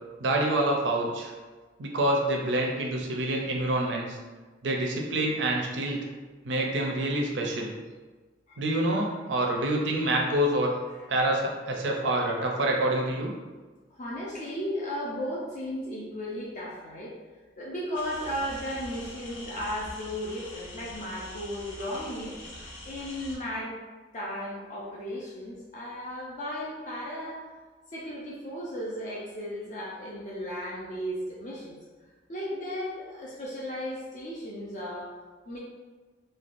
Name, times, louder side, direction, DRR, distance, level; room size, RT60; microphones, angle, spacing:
voice 1, 0.2-1.3 1.8-4.2 4.6-6.0 6.4-7.7 8.6-10.7 11.1-13.3, right 1 dB, 70° right, 0 dB, 0.5 m, -27 dB
voice 2, 14.0-17.2 17.6-23.7 24.1-27.4 27.9-31.8 32.3-35.1 35.5-35.6, equal, 40° left, -5 dB, 0.4 m, -35 dB
sound 1, 17.9-23.4, left 1 dB, 80° left, 0.7 m, -44 dB
3.2 x 2.2 x 2.5 m, 1.3 s
head